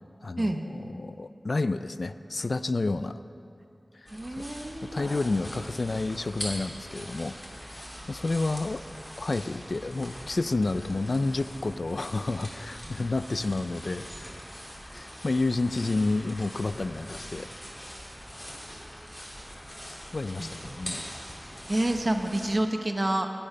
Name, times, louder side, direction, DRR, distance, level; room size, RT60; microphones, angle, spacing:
voice 1, 0.2-3.2 4.0-4.1 4.4-4.5 4.8-7.4 7.7-8.8 9.2-14.4 14.9-17.5 19.8-21.0, left 3 dB, 65° left, 12 dB, 0.3 m, -30 dB
sound 1, 4.1-22.5, equal, 10° left, 3.2 m, -42 dB
voice 2, 4.1-5.1 20.4-20.5 21.7-23.3, right 1 dB, 35° right, 5 dB, 1.0 m, -28 dB
15.5 x 8.7 x 5.6 m, 2.6 s
wide cardioid pair, 60°, 0 cm